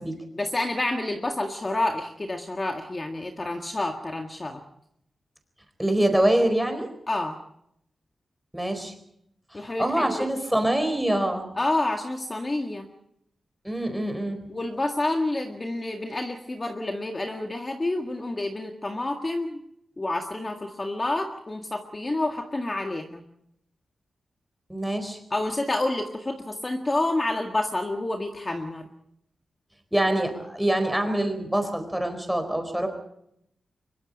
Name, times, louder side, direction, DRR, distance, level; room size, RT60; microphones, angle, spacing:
voice 1, 0.3-4.6 7.1-7.4 9.5-10.3 11.6-12.9 14.5-19.6 20.0-23.2 25.3-28.9, left 2 dB, 25° left, 3 dB, 1.8 m, -29 dB
voice 2, 5.8-6.9 8.5-8.9 9.5-11.5 13.6-14.4 24.7-25.2 29.9-32.9, right 1 dB, 5° right, 6 dB, 4.4 m, -25 dB
24.0 x 22.5 x 5.3 m, 0.75 s
wide cardioid pair, 130°, 0 cm